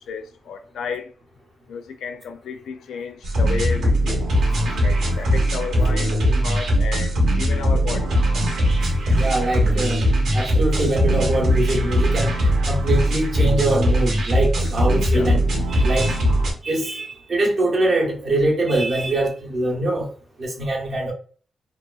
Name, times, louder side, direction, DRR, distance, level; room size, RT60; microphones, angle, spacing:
voice 1, 0.1-1.1 1.7-4.3 4.8-8.1 15.1-15.3, left 5 dB, 85° left, 0.4 m, -32 dB
sound 1, 3.2-16.5, equal, 75° right, 0.9 m, -20 dB
voice 2, 9.2-10.0 10.3-12.3 12.7-15.4 15.7-16.2 16.6-20.1 20.4-21.1, right 1 dB, 45° right, 0.7 m, -23 dB
2.8 x 2.2 x 2.3 m
wide cardioid pair, 160°, 0 cm